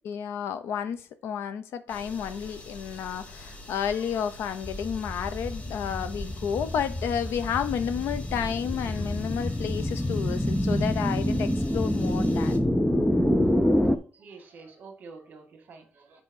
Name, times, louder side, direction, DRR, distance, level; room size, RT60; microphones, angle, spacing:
voice 1, 0.0-12.6, left 8 dB, 85° left, 12 dB, 0.7 m, -31 dB
sound 1, 1.9-12.6, left 2 dB, 30° left, 1.1 m, -45 dB
voice 2, 3.9-4.2 5.0-5.4 8.9-9.6 10.3-10.4 13.1-13.3 14.1-16.2, right 4 dB, 45° right, 4 dB, 1.9 m, -50 dB
sound 2, 4.6-14.0, left 1 dB, 5° left, 0.4 m, -27 dB
6.2 x 4.5 x 5.4 m, 0.40 s
cardioid pair, 165°, 4 cm